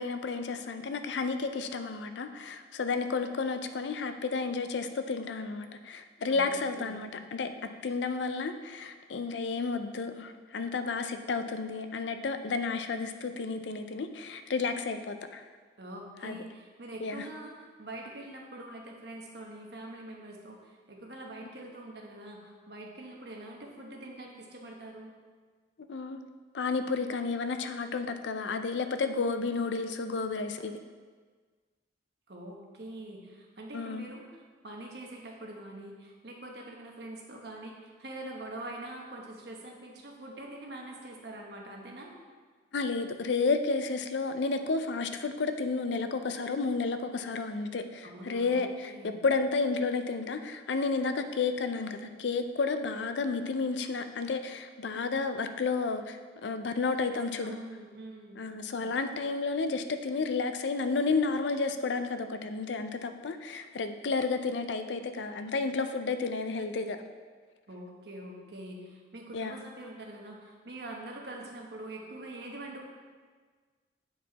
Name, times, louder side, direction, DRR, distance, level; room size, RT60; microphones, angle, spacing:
voice 1, 0.0-7.5 7.8-15.4 16.2-16.4 17.0-17.2 25.9-26.2 26.5-30.8 33.7-34.1 42.7-56.2 56.4-57.5 58.4-67.0 69.3-69.6, left 4 dB, 80° left, 8 dB, 0.5 m, -31 dB
voice 2, 15.8-25.1 32.3-34.2 34.6-42.1 48.0-49.2 57.1-58.4 67.7-72.8, right 1 dB, 65° right, -1 dB, 1.2 m, -44 dB
8.4 x 4.6 x 4.0 m, 1.5 s
head